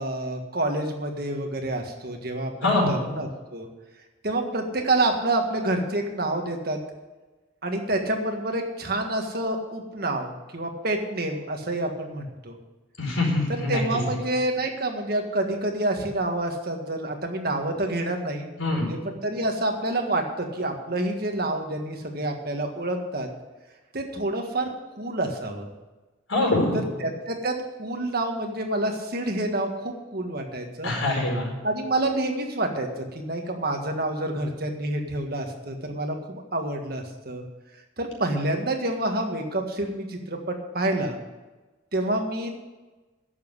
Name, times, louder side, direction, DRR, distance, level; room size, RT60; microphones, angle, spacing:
voice 1, 0.0-3.7 4.2-6.8 7.6-12.6 13.5-23.3 23.9-24.7 25.0-25.7 27.0-30.9 31.6-37.4 38.0-41.2 41.9-42.6, right 2 dB, 50° right, 3 dB, 1.7 m, -28 dB
voice 2, 2.6-3.0 13.0-13.8 18.6-18.9 26.3-26.8 30.8-31.5, left 2 dB, 80° left, -1 dB, 4.8 m, -23 dB
11.0 x 7.4 x 9.7 m, 1.2 s
head